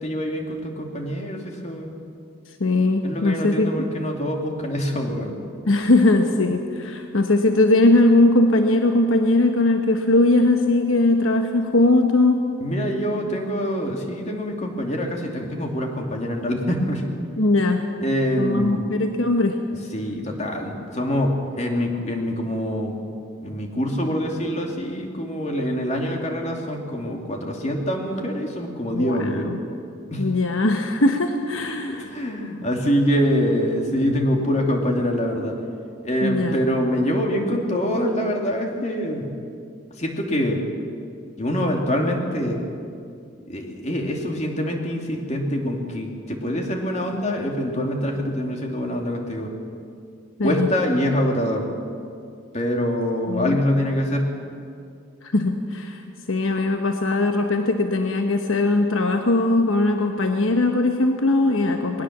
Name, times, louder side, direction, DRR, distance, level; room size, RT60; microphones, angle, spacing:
voice 1, 0.0-1.9 3.0-5.4 12.6-17.1 18.0-18.8 19.9-23.0 23.4-29.5 30.1-30.3 31.9-35.6 36.0-39.4 40.0-40.6 41.4-42.6 43.5-49.5 50.4-51.7 52.5-54.3, equal, 35° left, 2 dB, 2.5 m, -25 dB
voice 2, 2.6-3.7 5.7-12.4 17.4-17.9 18.4-19.6 28.9-29.6 30.2-32.1 36.2-36.6 50.4-50.7 53.3-53.6 55.2-56.0 56.3-62.0, left 2 dB, 90° left, 5 dB, 1.1 m, -20 dB
20.5 x 17.5 x 7.3 m, 2.4 s
head